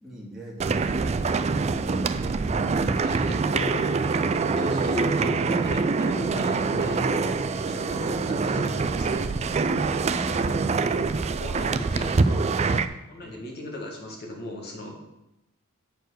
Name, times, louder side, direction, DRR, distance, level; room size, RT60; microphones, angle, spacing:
voice 1, 0.0-2.0 7.6-7.8 13.2-13.4, equal, ahead, -6 dB, 2.0 m, -44 dB
sound 1, 0.6-12.9, right 4 dB, 30° right, 0.3 m, -25 dB
voice 2, 2.7-3.2 3.5-3.8 4.5-7.1 7.6-9.3 11.2-12.4 13.1-14.9, left 1 dB, 45° left, 0 dB, 1.9 m, -37 dB
8.2 x 4.6 x 6.4 m, 0.92 s
head